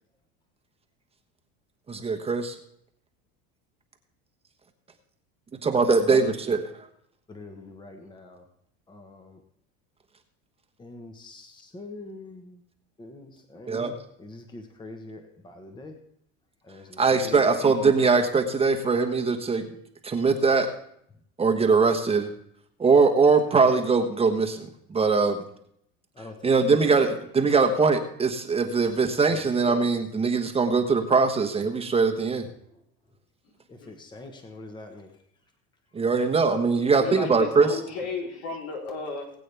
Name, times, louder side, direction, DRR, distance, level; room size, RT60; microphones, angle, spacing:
voice 1, 1.9-2.5 5.6-6.6 13.7-13.9 17.0-19.6 20.0-20.7 21.4-22.3 22.8-25.4 26.4-32.4 35.9-37.8, right 4 dB, 20° right, 5 dB, 1.2 m, -22 dB
voice 2, 7.3-8.4 8.9-9.4 10.8-12.6 13.0-16.0 16.6-17.5 26.1-26.7 27.0-27.1 28.8-29.0 29.3-29.4 33.7-35.1, left 2 dB, 15° left, 5 dB, 1.2 m, -44 dB
voice 3, 17.2-17.6 33.4-33.5 33.8-33.9 36.9-39.3, left 4 dB, 75° left, 0 dB, 3.7 m, -35 dB
20.5 x 8.4 x 3.4 m, 0.70 s
supercardioid pair, 125°, 31 cm